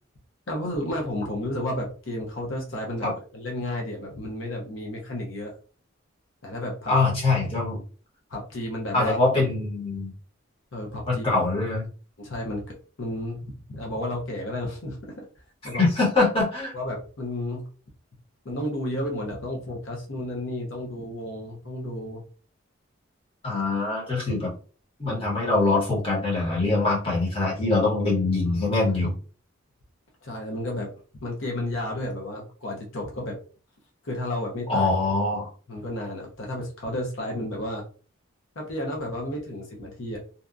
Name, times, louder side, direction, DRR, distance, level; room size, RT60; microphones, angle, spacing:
voice 1, 0.5-5.5 6.4-6.9 8.3-9.2 10.7-11.2 12.2-15.2 15.6-15.8 16.7-17.7 18.4-22.2 24.0-24.4 25.1-25.2 26.5-26.9 28.5-28.8 30.2-30.9 31.2-33.4 34.0-34.9 35.7-37.8 38.6-40.2, left 1 dB, 75° left, 0 dB, 0.7 m, -32 dB
voice 2, 6.9-7.8 8.9-10.1 11.1-11.8 15.8-16.7 23.4-24.5 25.0-29.1 34.7-35.5, left 3 dB, 25° left, -4 dB, 1.1 m, -23 dB
2.7 x 2.3 x 2.5 m, 0.38 s
head